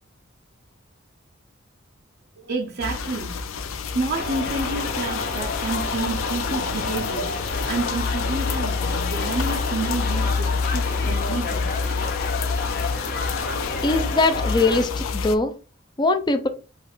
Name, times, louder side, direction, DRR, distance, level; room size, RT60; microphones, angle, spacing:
voice 1, 2.4-3.4 3.8-11.7, right 3 dB, 55° right, 0.6 m, -30 dB
sound 1, 2.8-15.4, left 5 dB, 85° left, 0.5 m, -28 dB
sound 2, 4.1-14.8, left 3 dB, 50° left, 0.8 m, -30 dB
voice 2, 13.8-15.5 16.0-16.5, left 2 dB, 20° left, 0.5 m, -21 dB
4.8 x 2.5 x 4.3 m
head